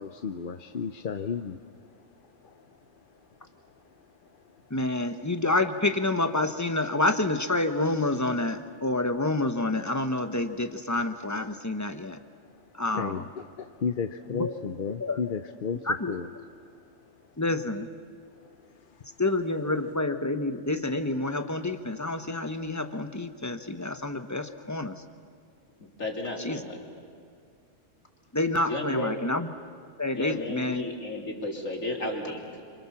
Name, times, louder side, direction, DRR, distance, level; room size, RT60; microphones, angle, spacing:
voice 1, 0.0-1.6 12.9-15.8 16.1-16.2, left 6 dB, 50° left, 7 dB, 0.8 m, -33 dB
voice 2, 4.7-12.2 12.8-13.2 14.3-14.5 15.0-15.2 15.8-16.2 17.4-17.9 19.2-25.0 26.4-26.6 28.3-29.5 30.0-30.9, left 2 dB, 15° left, 7 dB, 1.0 m, -28 dB
voice 3, 25.8-27.0 28.7-29.2 30.1-32.6, left 1 dB, 90° left, 0 dB, 3.8 m, -33 dB
28.5 x 25.5 x 7.2 m, 2.3 s
omnidirectional pair, 1.3 m